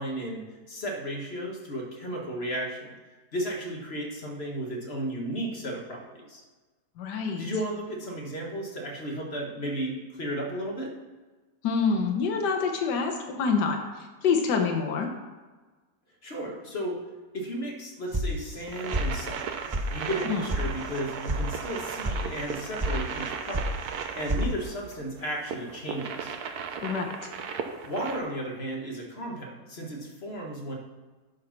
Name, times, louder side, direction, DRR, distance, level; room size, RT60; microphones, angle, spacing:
voice 1, 0.0-2.9 3.3-6.4 7.4-10.9 16.2-17.0 17.3-19.4 19.9-23.7 24.1-26.3 27.8-30.7, right 1 dB, 40° left, 0 dB, 1.6 m, -34 dB
voice 2, 7.0-7.4 11.6-15.1 20.2-20.4 26.8-27.3, left 5 dB, 80° left, 3 dB, 1.6 m, -27 dB
sound 1, 18.1-18.7 18.9-19.4 19.7-19.8 20.2-20.6 20.9-21.4 21.7-22.2 22.5-22.9 23.2-23.7 24.0-24.5, right 1 dB, 35° right, 0.3 m, -29 dB
sound 2, 18.6-28.2, right 6 dB, 70° right, 1.2 m, -36 dB
10.0 x 4.6 x 5.8 m, 1.3 s
omnidirectional pair, 1.8 m